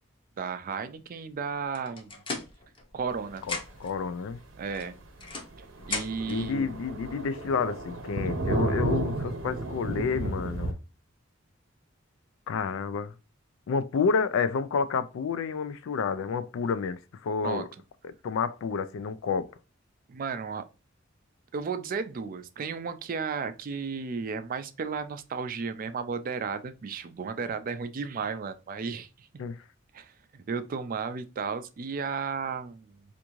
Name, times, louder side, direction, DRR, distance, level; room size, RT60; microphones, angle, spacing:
voice 1, 0.4-2.1 2.9-3.4 4.6-5.0 5.9-6.7 17.4-17.6 20.1-20.7 21.5-29.3 29.9-33.0, right 5 dB, 45° right, 0.4 m, -34 dB
sound 1, 1.7-3.1 3.4-4.0 4.7-6.4, left 3 dB, 25° left, 0.6 m, -37 dB
voice 2, 3.5-4.4 6.3-10.8 12.5-13.1 13.7-17.7 18.0-19.5 29.4-29.6, left 5 dB, 80° left, 0.3 m, -30 dB
Thunder, 3.8-3.9 4.3-4.4 4.8-4.9 5.2-5.3 5.5-10.7, right 1 dB, 70° right, 0.7 m, -32 dB
3.5 x 2.5 x 3.0 m
head